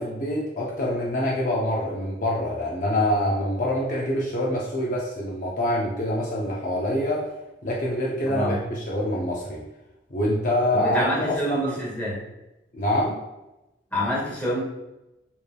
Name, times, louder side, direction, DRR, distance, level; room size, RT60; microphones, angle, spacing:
voice 1, 0.0-7.3 7.6-9.6 10.1-11.8 12.7-13.2, left 1 dB, 45° left, -4 dB, 0.7 m, -25 dB
voice 2, 10.7-12.1 13.9-14.6, left 1 dB, 10° left, -7 dB, 1.6 m, -26 dB
7.0 x 3.3 x 2.3 m, 0.97 s
head